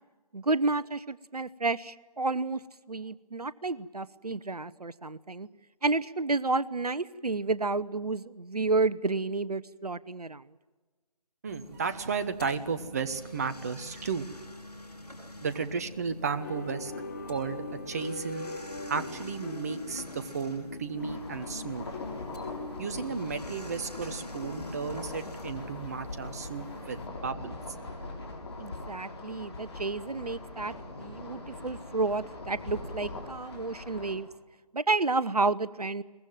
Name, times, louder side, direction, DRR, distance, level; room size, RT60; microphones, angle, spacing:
voice 1, 0.3-2.6 2.9-5.5 5.8-10.4 28.6-30.7 31.0-34.3 34.7-36.0, right 3 dB, 75° right, 17 dB, 0.9 m, -30 dB
voice 2, 11.4-14.3 15.4-16.9 17.3-18.5 18.9-21.9 22.8-27.6, right 5 dB, 25° right, 10 dB, 1.0 m, -34 dB
sound 1, 11.5-27.1, left 1 dB, 80° left, 7.9 m, -47 dB
sound 2, 16.4-24.9, left 3 dB, 25° left, 3.4 m, -42 dB
sound 3, 21.0-34.1, left 2 dB, 40° left, 6.9 m, -42 dB
23.0 x 20.5 x 9.1 m, 1.3 s
figure-of-eight pair, 155°, 20 cm